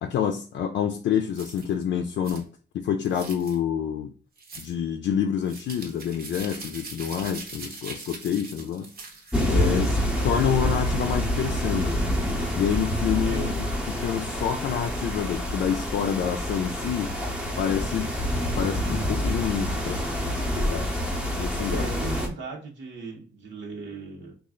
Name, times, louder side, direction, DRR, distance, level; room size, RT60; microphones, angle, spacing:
voice 1, 0.0-2.4 2.7-4.1 4.6-8.9 9.5-10.0 10.2-12.0 12.5-17.1 17.6-18.1 18.6-20.0 20.6-20.9 21.4-21.9, left 8 dB, 70° left, 4 dB, 0.4 m, -27 dB
sound 1, 1.3-1.7 2.2-2.4 3.0-3.6 4.4-4.7 5.4-9.7, right 3 dB, 50° right, 0.9 m, -41 dB
sound 2, 9.3-22.3, equal, 5° right, 0.6 m, -27 dB
voice 2, 21.7-24.3, right 3 dB, 75° right, -1 dB, 1.0 m, -37 dB
3.2 x 2.3 x 3.6 m, 0.38 s
wide cardioid pair, 145°, 19 cm